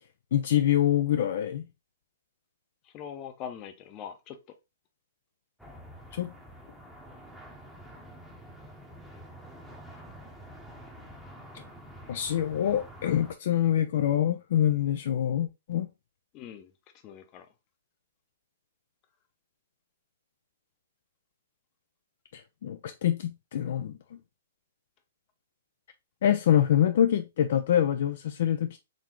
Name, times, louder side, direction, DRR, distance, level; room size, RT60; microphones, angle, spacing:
voice 1, 0.3-1.6 6.1-6.3 12.1-15.9 22.3-24.0 26.2-28.8, left 10 dB, 60° left, 0.4 m, -25 dB
voice 2, 2.8-4.4 16.3-16.7 17.0-17.5, left 8 dB, 30° left, 0.8 m, -42 dB
sound 1, 5.6-13.3, equal, ahead, 0.8 m, -48 dB
4.1 x 3.1 x 3.0 m
hypercardioid pair, 130°, 0 cm